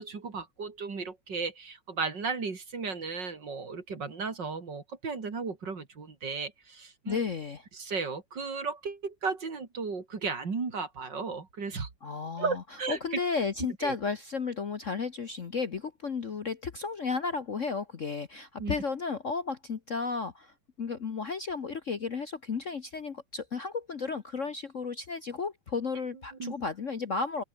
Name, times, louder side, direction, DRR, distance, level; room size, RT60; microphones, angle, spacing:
voice 1, 0.0-7.2 7.7-11.9 12.4-13.0 13.8-14.0 18.6-18.7 26.4-26.5, right 4 dB, 55° right, 3.6 m, -35 dB
voice 2, 7.1-7.7 12.0-27.4, left 4 dB, 45° left, 1.3 m, -33 dB
open air
omnidirectional pair, 2.3 m